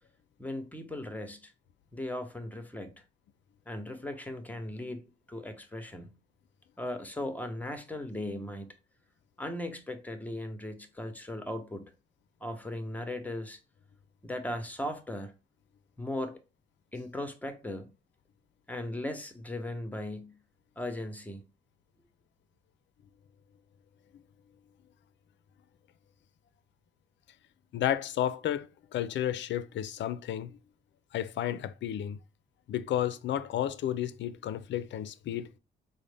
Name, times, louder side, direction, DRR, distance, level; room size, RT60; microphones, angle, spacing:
voice 1, 0.4-1.5 1.9-3.0 3.7-5.0 5.3-6.1 6.8-8.7 9.4-11.9 12.4-13.6 14.2-15.3 16.0-16.4 16.9-17.9 18.7-20.4 20.8-21.4, left 1 dB, 5° left, 0.8 m, -37 dB
voice 2, 27.7-30.6 31.1-32.2 32.7-35.5, left 11 dB, 65° left, 0.4 m, -32 dB
3.9 x 2.1 x 3.4 m
supercardioid pair, 65°, 21 cm